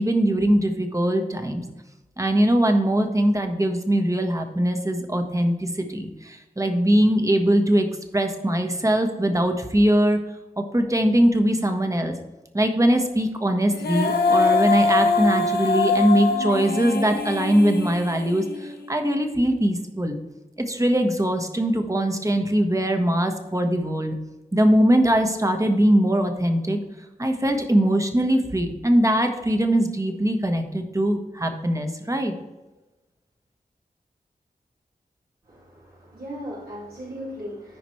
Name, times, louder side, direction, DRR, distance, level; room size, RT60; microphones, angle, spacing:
voice 1, 0.0-1.6 2.2-7.9 8.1-10.2 10.6-12.1 12.5-20.2 20.7-24.1 24.5-26.8 27.2-32.3, right 1 dB, 20° right, 5 dB, 1.3 m, -21 dB
Female singing, 13.7-18.9, left 4 dB, 80° left, 1.1 m, -23 dB
voice 2, 35.5-37.8, equal, 75° right, -8 dB, 2.9 m, -37 dB
13.5 x 5.0 x 3.2 m, 1.1 s
cardioid pair, 55°, 16 cm